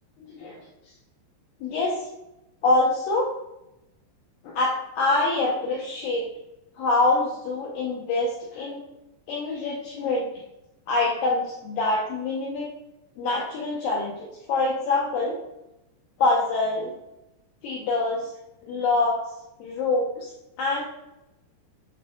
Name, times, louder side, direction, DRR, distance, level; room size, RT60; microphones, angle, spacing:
voice 1, 0.3-0.6 1.6-2.0 2.6-3.3 4.4-6.3 6.8-8.8 9.3-10.3 10.9-12.7 13.2-14.1 14.5-15.4 16.2-16.9 17.6-18.3 18.7-19.2 19.6-20.3 20.6-20.9, left 2 dB, 85° left, -3 dB, 2.0 m, -25 dB
8.6 x 4.9 x 2.3 m, 0.90 s
omnidirectional pair, 5.1 m